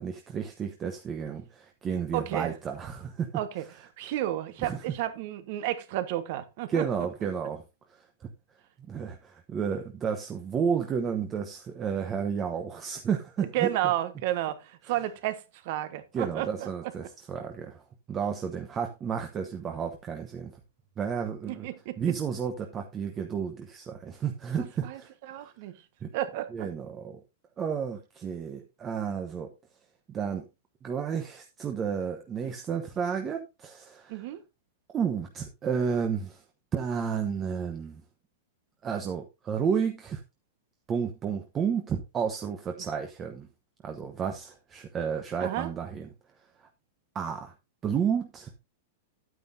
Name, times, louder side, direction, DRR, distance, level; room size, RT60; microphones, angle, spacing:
voice 1, 0.0-3.3 4.6-4.8 6.7-7.6 7.9-8.1 8.9-13.7 16.1-17.8 18.1-20.5 21.0-21.7 22.0-25.1 26.0-26.1 26.5-27.2 27.6-29.5 30.1-30.4 30.8-34.2 34.9-36.4 36.7-38.0 38.8-40.2 40.9-43.5 43.8-46.1 47.1-47.5 47.8-48.5, right 7 dB, 20° right, 1.0 m, -31 dB
voice 2, 2.1-2.5 3.3-3.6 4.0-6.8 13.5-16.7 21.5-22.0 24.8-25.0 25.3-25.7 26.1-26.7 34.1-34.4 45.4-45.7, right 13 dB, 45° right, 1.3 m, -31 dB
10.5 x 9.3 x 2.7 m
supercardioid pair, 160°, 0 cm